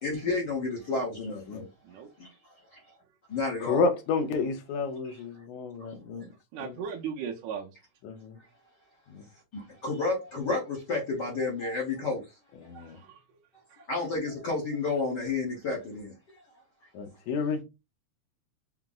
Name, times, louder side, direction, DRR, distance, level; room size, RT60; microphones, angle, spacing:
voice 1, 0.0-1.7 2.2-2.3 2.7-2.8 3.3-3.8 9.5-12.2 13.9-16.1, left 3 dB, 60° left, 1.1 m, -31 dB
voice 2, 3.6-6.3 6.6-6.8 8.0-8.4 9.1-9.3 12.6-13.0 16.9-17.6, left 4 dB, 85° left, 2.2 m, -30 dB
voice 3, 6.5-7.8 12.7-13.4 13.7-13.9, right 7 dB, 75° right, 1.9 m, -38 dB
5.6 x 2.0 x 3.6 m
omnidirectional pair, 3.4 m